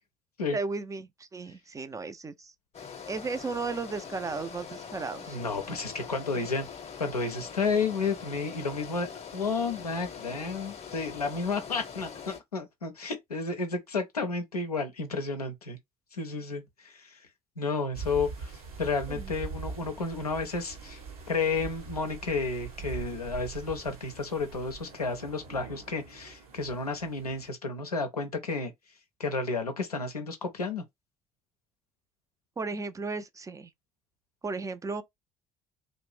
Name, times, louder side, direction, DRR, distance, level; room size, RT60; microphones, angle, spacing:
voice 1, 0.5-2.5 3.1-5.4 6.4-6.5 19.1-19.3 32.6-33.7 34.4-35.0, right 4 dB, 15° right, 0.3 m, -35 dB
sound 1, 2.7-12.4, left 6 dB, 35° left, 0.7 m, -43 dB
voice 2, 5.3-6.7 7.0-9.1 9.3-15.8 16.1-17.2 17.6-18.5 18.8-21.0 21.3-28.7 29.2-30.8, left 4 dB, 85° left, 0.5 m, -31 dB
sound 2, 17.9-27.5, right 5 dB, 75° right, 0.9 m, -43 dB
2.5 x 2.0 x 3.2 m
figure-of-eight pair, 50°, 19 cm